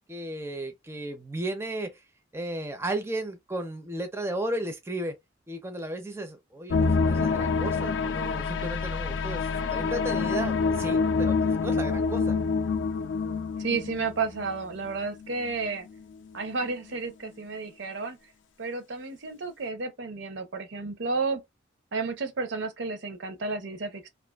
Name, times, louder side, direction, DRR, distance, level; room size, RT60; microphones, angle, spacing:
voice 1, 0.1-2.0 2.3-5.2 5.5-12.4, right 1 dB, 15° right, 0.4 m, -34 dB
sound 1, 6.7-14.9 15.2-15.5 16.0-16.1, left 4 dB, 70° left, 0.4 m, -27 dB
voice 2, 13.6-15.9 16.3-18.2 18.6-21.4 21.9-24.1, right 4 dB, 70° right, 0.6 m, -32 dB
2.4 x 2.3 x 2.2 m
head